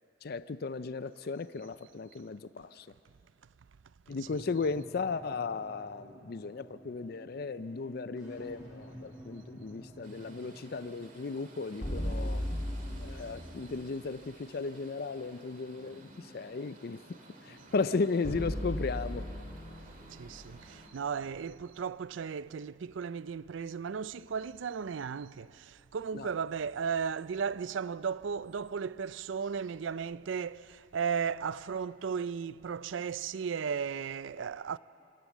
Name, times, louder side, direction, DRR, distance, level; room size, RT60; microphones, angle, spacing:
voice 1, 0.2-2.9 4.1-12.4 13.0-17.0 17.4-19.2 26.1-26.3, left 4 dB, 50° left, 0.4 m, -35 dB
voice 2, 4.1-4.4 20.1-34.8, right 6 dB, 80° right, 0.4 m, -35 dB
sound 1, 4.2-18.8, equal, 20° right, 7.7 m, -53 dB
sound 2, 10.0-20.9, right 2 dB, 45° right, 2.3 m, -55 dB
sound 3, 11.8-14.0 18.2-21.5, equal, 35° left, 2.6 m, -37 dB
26.0 x 17.0 x 7.3 m
head